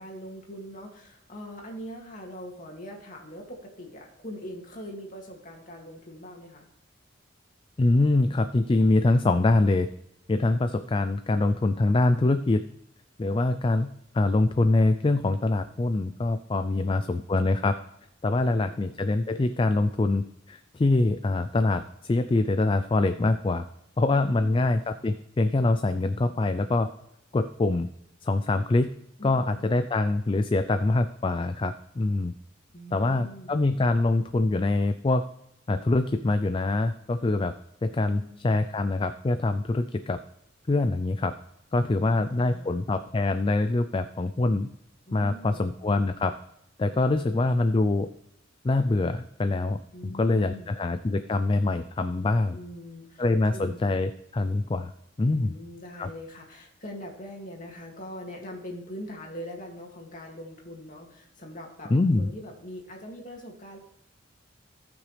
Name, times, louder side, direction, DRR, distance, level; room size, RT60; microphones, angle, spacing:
voice 1, 0.0-6.7 16.6-17.1 32.7-33.6 37.9-38.9 41.8-42.8 45.1-45.7 46.9-47.8 49.9-50.8 52.5-53.8 55.2-63.8, equal, 40° left, 0 dB, 2.3 m, -43 dB
voice 2, 7.8-9.9 10.3-12.6 13.2-17.8 18.2-23.7 24.0-26.9 27.3-27.9 28.2-28.9 29.2-32.3 32.9-35.2 35.7-37.5 37.8-40.2 40.7-41.3 41.7-44.7 45.1-46.3 46.8-48.1 48.6-52.6 53.2-54.9 55.2-55.5 56.0-56.1 61.9-62.3, left 2 dB, 25° left, 10 dB, 0.3 m, -24 dB
17.5 x 6.1 x 3.3 m, 0.78 s
head